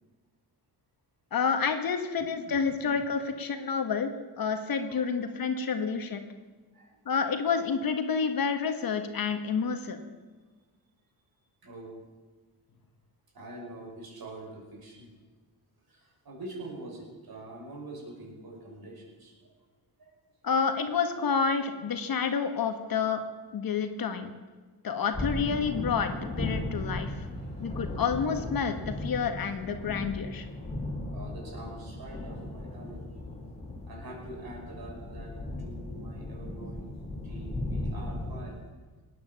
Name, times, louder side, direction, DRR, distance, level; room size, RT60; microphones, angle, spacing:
voice 1, 1.3-4.1 4.4-6.2 7.0-10.0 20.4-23.2 23.5-24.3 24.8-27.1 27.6-30.5, left 6 dB, 55° left, 7 dB, 1.6 m, -29 dB
voice 2, 2.2-3.0 4.8-5.4 6.1-6.2 6.7-7.0 11.6-11.9 13.3-15.1 15.9-19.5 20.0-20.1 22.0-22.3 27.3-28.0 31.1-33.5 33.9-35.3 35.6-36.9 37.2-38.6, right 1 dB, 55° right, -1 dB, 6.0 m, -45 dB
sound 1, 25.1-38.4, left 1 dB, 15° left, 3.2 m, -36 dB
18.5 x 9.8 x 7.3 m, 1.3 s
cardioid pair, 95°, 42 cm